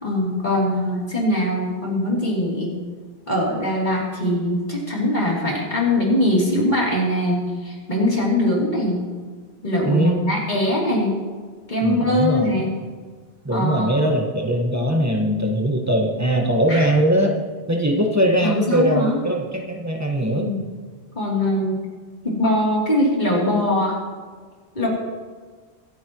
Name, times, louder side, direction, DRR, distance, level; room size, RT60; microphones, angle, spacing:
voice 1, 0.0-2.7 3.3-9.0 9.6-11.2 11.7-12.8 13.5-14.0 16.7-16.9 18.4-19.2 20.3-20.6 21.1-21.8 22.2-24.0 24.7-24.9, left 1 dB, 45° left, -5 dB, 3.4 m, -22 dB
voice 2, 9.8-10.2 11.8-12.5 13.4-17.3 17.7-20.5, right 1 dB, 15° right, 0 dB, 1.5 m, -21 dB
25.0 x 8.7 x 3.1 m, 1.5 s
omnidirectional pair, 1.1 m